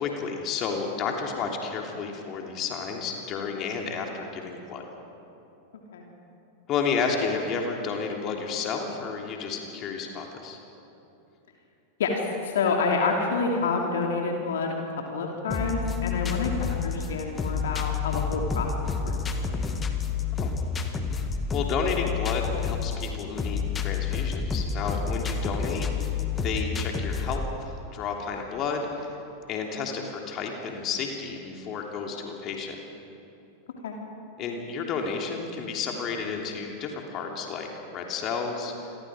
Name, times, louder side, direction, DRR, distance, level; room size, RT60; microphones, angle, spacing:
voice 1, 0.0-4.8 6.7-10.6 20.4-20.5 21.5-29.1 29.5-32.8 34.4-38.7, left 5 dB, 35° left, 1 dB, 3.2 m, -31 dB
voice 2, 12.0-19.7 33.8-33.9, left 4 dB, 60° left, 1 dB, 2.8 m, -28 dB
sound 1, 15.5-27.5, left 5 dB, 20° left, 1.8 m, -29 dB
28.5 x 23.0 x 5.1 m, 2.8 s
figure-of-eight pair, 90°, 0 cm